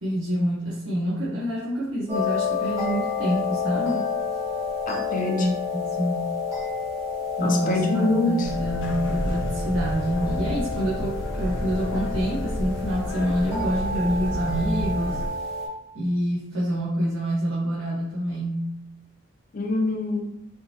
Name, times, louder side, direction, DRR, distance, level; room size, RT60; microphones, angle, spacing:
voice 1, 0.0-4.0 5.4-6.3 7.4-15.2 15.9-18.7, equal, 85° right, -7 dB, 0.8 m, -27 dB
sound 1, 2.1-15.7, left 5 dB, 15° right, 1.0 m, -30 dB
voice 2, 4.9-5.5 7.4-8.5 19.5-20.3, left 2 dB, 45° left, 1 dB, 0.6 m, -25 dB
sound 2, 8.4-15.3, equal, 85° left, 1.0 m, -31 dB
3.5 x 2.8 x 2.8 m, 0.81 s
head